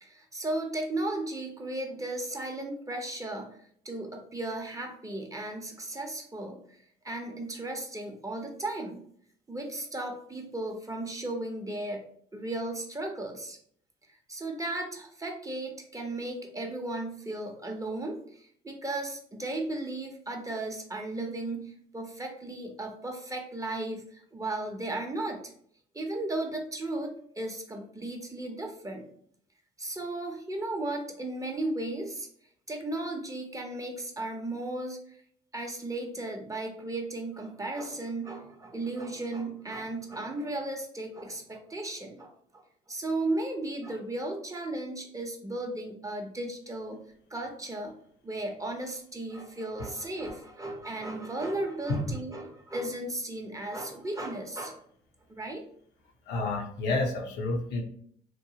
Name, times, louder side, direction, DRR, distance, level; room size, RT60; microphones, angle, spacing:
voice 1, 0.0-3.6 3.8-9.1 9.5-12.0 12.3-13.6 14.3-25.5 25.9-29.1 29.8-32.3 32.7-35.2 35.5-42.6 42.9-47.0 47.3-47.9 48.2-54.8 55.3-55.6, right 2 dB, 20° right, 2 dB, 0.7 m, -35 dB
voice 2, 56.3-57.8, left 2 dB, 75° left, 1 dB, 0.7 m, -29 dB
2.9 x 2.1 x 2.8 m, 0.63 s
supercardioid pair, 65°, 18 cm